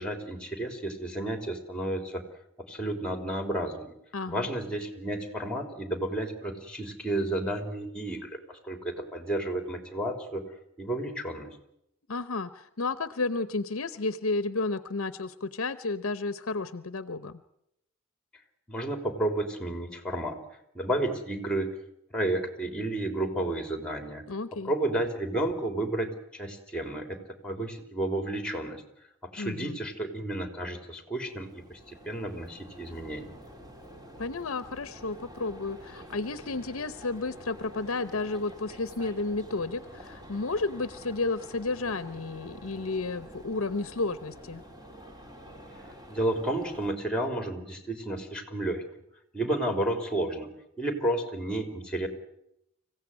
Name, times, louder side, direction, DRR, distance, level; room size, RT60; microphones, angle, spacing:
voice 1, 0.0-2.2 2.7-3.9 4.3-10.5 10.8-11.5 18.7-20.4 20.7-21.7 22.1-24.2 24.6-27.2 27.4-28.8 29.2-33.3 46.1-48.8 49.3-50.5 50.8-52.1, right 1 dB, 5° left, 6 dB, 3.3 m, -31 dB
voice 2, 4.1-4.5 12.1-17.4 24.3-24.7 29.4-29.8 34.2-44.6, left 3 dB, 70° left, 13 dB, 0.8 m, -32 dB
sound 1, 31.2-46.9, equal, 20° right, 3.4 m, -48 dB
25.5 x 16.0 x 9.7 m, 0.81 s
head